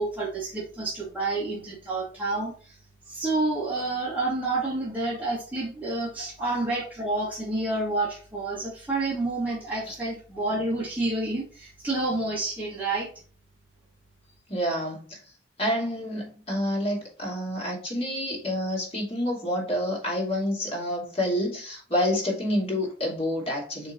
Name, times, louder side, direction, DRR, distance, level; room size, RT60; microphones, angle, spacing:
voice 1, 0.0-2.7 3.1-13.1, right 2 dB, 10° right, -6 dB, 2.5 m, -29 dB
voice 2, 14.5-15.2 15.6-23.9, left 1 dB, 30° left, -2 dB, 2.8 m, -28 dB
6.1 x 5.0 x 4.1 m, 0.40 s
head